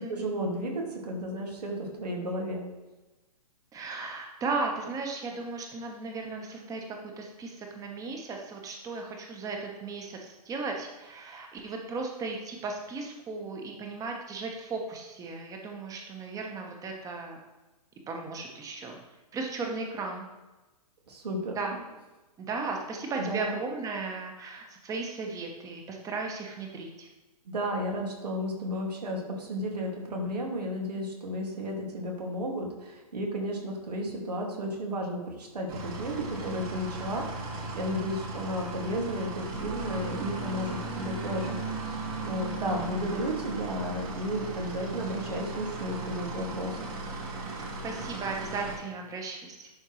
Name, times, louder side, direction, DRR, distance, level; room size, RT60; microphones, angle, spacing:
voice 1, 0.1-2.7 21.1-21.6 23.2-23.5 27.5-37.2 37.5-39.3 39.6-46.8, equal, 85° right, 0 dB, 2.2 m, -33 dB
voice 2, 3.7-6.8 7.2-17.4 18.1-19.0 19.3-20.2 21.5-21.8 22.4-27.1 47.8-49.7, right 3 dB, 15° right, 2 dB, 1.2 m, -36 dB
sound 1, 35.7-48.8, right 2 dB, 60° right, 2.7 m, -37 dB
11.0 x 4.4 x 3.2 m, 1.1 s
hypercardioid pair, 130°, 20 cm